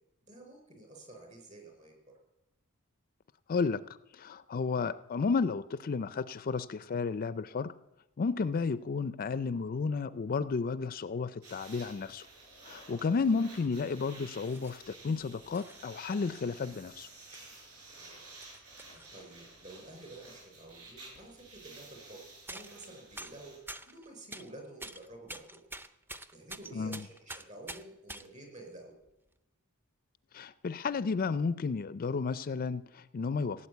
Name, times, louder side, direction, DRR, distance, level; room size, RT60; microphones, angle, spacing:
voice 1, 0.3-2.1 13.0-13.3 17.9-18.3 18.8-22.2 22.5-23.6 23.9-25.6 26.3-28.9, right 2 dB, 35° right, 3 dB, 4.6 m, -50 dB
voice 2, 3.5-3.8 4.1-7.7 8.2-12.3 12.6-17.1 26.7-27.0 30.3-33.7, left 4 dB, 40° left, 15 dB, 0.4 m, -32 dB
sound 1, 11.4-23.6, right 2 dB, 90° right, 6.5 m, -52 dB
sound 2, 13.6-13.8 14.4-14.9 15.5-16.0 16.7-16.8 17.3-17.4 17.8-19.1 20.7-20.8 20.9-21.1 22.5-22.9 23.1-24.5 24.8-28.3 29.1-29.3, right 1 dB, 10° right, 0.6 m, -46 dB
16.5 x 8.7 x 8.2 m, 0.91 s
head